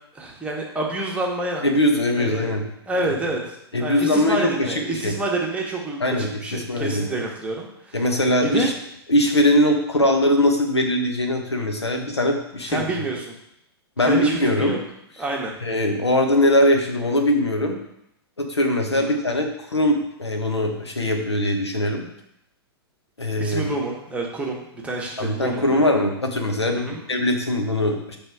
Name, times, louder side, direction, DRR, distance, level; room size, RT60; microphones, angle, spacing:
voice 1, 0.1-1.6 2.2-2.4 2.9-8.0 8.4-8.7 12.7-13.3 14.1-14.8 15.2-15.5 18.9-19.2 23.2-25.9 26.7-27.0, right 2 dB, 10° right, -1 dB, 1.1 m, -28 dB
voice 2, 1.6-2.6 3.0-3.2 3.7-5.1 6.0-7.1 7.9-8.7 9.1-12.8 14.0-14.7 15.6-17.8 18.4-22.0 23.2-23.6 25.2-28.2, left 1 dB, 85° left, 3 dB, 1.1 m, -21 dB
6.5 x 3.4 x 4.7 m, 0.77 s
figure-of-eight pair, 110°, 14 cm